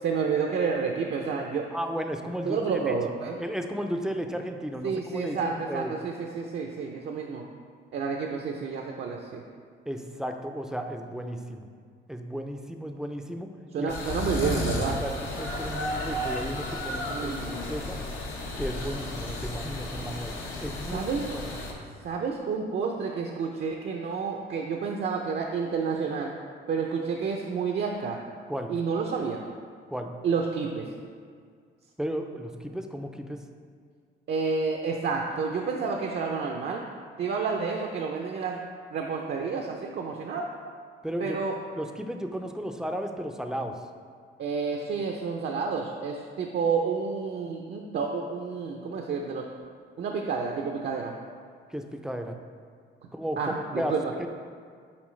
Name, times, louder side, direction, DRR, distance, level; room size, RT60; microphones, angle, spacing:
voice 1, 0.0-1.7 2.5-3.4 4.8-7.5 7.9-9.4 13.7-15.0 17.1-17.6 20.9-21.3 22.0-26.3 26.7-28.2 28.7-29.4 30.2-30.9 34.3-36.8 37.2-38.6 38.9-40.5 41.2-41.6 44.4-49.5 50.0-51.1 53.4-54.1, right 5 dB, 55° right, 1 dB, 0.5 m, -30 dB
voice 2, 1.7-3.0 3.4-5.9 9.9-11.7 12.1-13.5 13.8-13.9 15.0-18.0 18.6-21.5 28.5-28.7 29.9-30.1 32.0-33.4 41.0-41.4 41.7-43.8 51.7-52.3 53.1-54.3, equal, 5° right, 5 dB, 0.4 m, -34 dB
sound 1, 13.9-21.7, left 1 dB, 80° left, 1.0 m, -33 dB
7.1 x 4.5 x 3.2 m, 2.1 s
cardioid pair, 90°, 20 cm